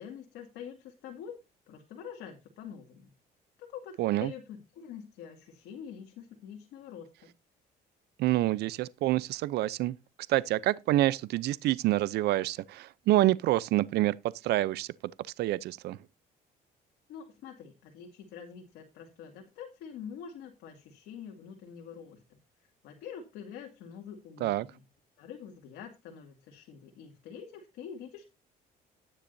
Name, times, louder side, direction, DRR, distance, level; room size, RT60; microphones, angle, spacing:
voice 1, 0.0-1.4 1.7-3.1 3.7-7.1 17.1-24.8 25.2-28.2, left 7 dB, 85° left, 2.2 m, -46 dB
voice 2, 4.0-4.3 8.2-9.9 10.3-14.2 14.4-14.9 15.4-16.0 24.4-24.7, right 15 dB, 75° right, 0.6 m, -27 dB
13.5 x 9.9 x 2.7 m
cardioid pair, 110°, 17 cm